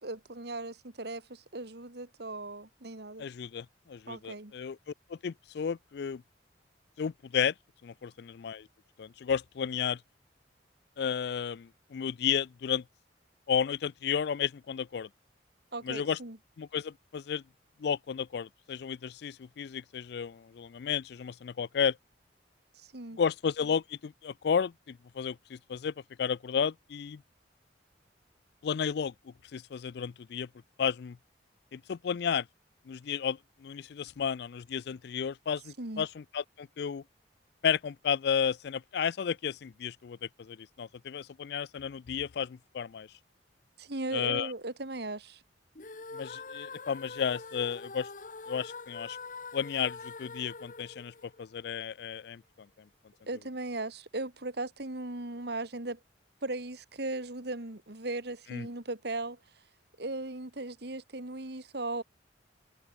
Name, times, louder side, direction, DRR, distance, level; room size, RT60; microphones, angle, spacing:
voice 1, 0.0-3.2 4.1-4.5 15.7-16.4 22.9-23.2 35.8-36.1 43.8-45.4 53.3-56.0 56.4-59.4 60.0-62.0, right 2 dB, 60° right, 2.1 m, -37 dB
voice 2, 3.2-4.8 5.1-6.2 7.0-7.5 7.8-8.7 9.0-10.0 11.0-12.8 13.5-15.1 15.8-16.2 16.6-17.4 17.8-22.0 23.2-27.2 28.6-30.5 30.8-31.2 31.7-32.5 32.9-37.0 37.6-43.1 44.1-44.5 46.1-48.1 48.5-49.2 49.5-52.4 58.5-58.7, left 7 dB, 60° left, 0.4 m, -33 dB
sound 1, 45.7-51.9, left 4 dB, 45° left, 1.7 m, -44 dB
head